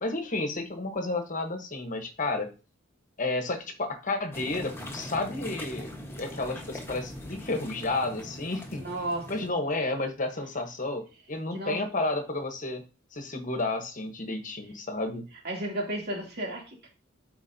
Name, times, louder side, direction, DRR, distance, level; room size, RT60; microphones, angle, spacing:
voice 1, 0.0-2.5 3.2-5.9 6.2-8.9 9.3-12.8 13.1-15.3, left 2 dB, 40° left, 7 dB, 1.1 m, -31 dB
sound 1, 4.3-9.5, left 1 dB, 10° left, 1.2 m, -41 dB
voice 2, 8.8-9.5 11.5-11.8 15.4-16.9, right 1 dB, 55° right, 0 dB, 2.7 m, -33 dB
12.0 x 4.6 x 2.7 m, 0.32 s
head